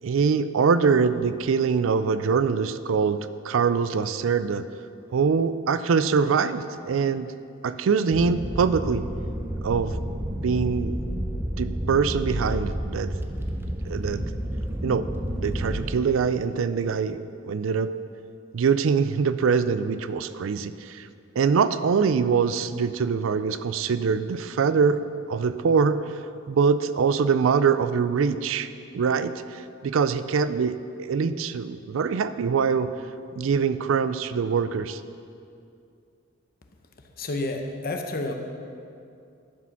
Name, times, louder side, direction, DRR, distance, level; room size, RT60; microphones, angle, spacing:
voice 1, 0.0-4.6 5.1-7.3 7.6-9.0 9.6-10.0 10.4-11.0 11.6-13.1 13.8-14.2 14.8-15.1 15.3-17.9 18.5-21.1 21.4-25.0 25.3-26.1 26.5-32.9 33.3-35.0, right 5 dB, 75° right, 13 dB, 0.4 m, -24 dB
sound 1, 8.1-15.9, equal, 10° right, 0.6 m, -30 dB
voice 2, 37.0-38.3, left 2 dB, 50° left, 4 dB, 0.9 m, -30 dB
11.5 x 4.9 x 5.9 m, 2.4 s
head